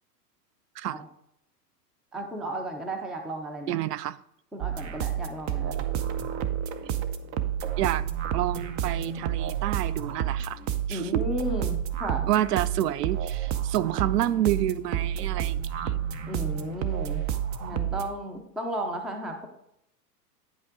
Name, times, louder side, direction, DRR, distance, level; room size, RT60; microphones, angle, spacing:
voice 1, 2.1-3.8 4.5-5.9 10.9-12.3 16.3-17.2 17.6-19.5, right 1 dB, ahead, 0.3 m, -34 dB
voice 2, 3.7-4.2 7.8-8.1 8.3-10.6 10.9-11.2 12.3-16.0, right 13 dB, 75° right, 0.6 m, -28 dB
sound 1, 4.6-18.1, right 10 dB, 35° right, 0.7 m, -30 dB
9.5 x 5.4 x 3.6 m
hypercardioid pair, 105°, 48 cm